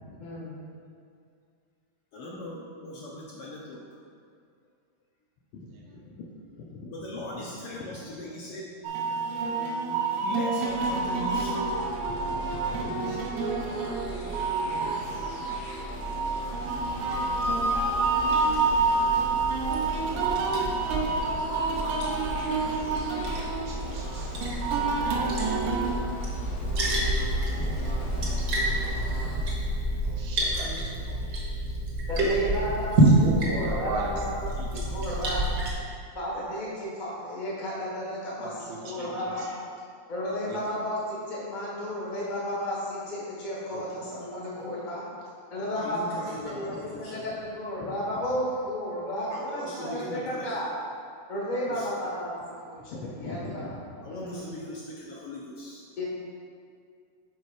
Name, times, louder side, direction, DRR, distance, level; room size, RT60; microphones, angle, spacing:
voice 1, 2.1-3.8 5.5-8.9 9.9-11.7 12.1-13.2 45.7-47.4 47.8-48.2 49.3-50.6 51.7-52.0 52.8-55.8, left 1 dB, 75° left, -4 dB, 1.3 m, -39 dB
sound 1, 8.8-25.9, right 3 dB, 90° right, 2.1 m, -28 dB
sound 2, 10.7-29.4, equal, 55° left, 0.9 m, -39 dB
Liquid, 16.7-35.7, right 1 dB, 55° right, 1.1 m, -29 dB
voice 2, 23.3-24.4 27.6-28.5 28.9-29.0 29.3-29.8 30.0-30.7 33.2-34.2 34.6-34.7 35.1-35.6 38.4-39.6 40.5-40.8 43.7-43.8 44.1-44.2, right 3 dB, 75° right, -3 dB, 2.1 m, -39 dB
voice 3, 30.4-31.2 32.1-35.5 36.1-39.5 40.1-45.1 45.5-46.1 46.4-50.7 51.3-52.3 52.6-53.7 54.1-54.5 56.0-56.1, equal, 40° left, -5 dB, 0.6 m, -33 dB
6.9 x 4.3 x 4.8 m, 2.3 s
omnidirectional pair, 3.3 m